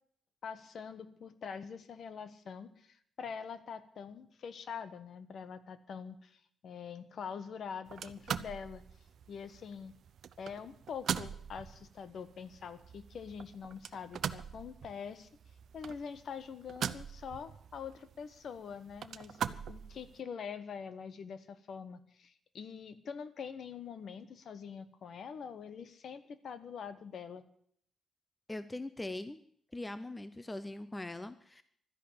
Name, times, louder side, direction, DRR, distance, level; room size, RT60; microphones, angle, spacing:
voice 1, 0.4-8.8 9.3-9.9 10.4-15.3 15.7-27.4, left 6 dB, 50° left, 13 dB, 1.1 m, -44 dB
sound 1, 7.9-20.2, right 8 dB, 55° right, 0.6 m, -42 dB
voice 2, 28.5-29.4 29.7-31.6, left 2 dB, 10° left, 13 dB, 0.6 m, -41 dB
12.5 x 10.5 x 8.6 m, 0.64 s
wide cardioid pair, 170°, 0 cm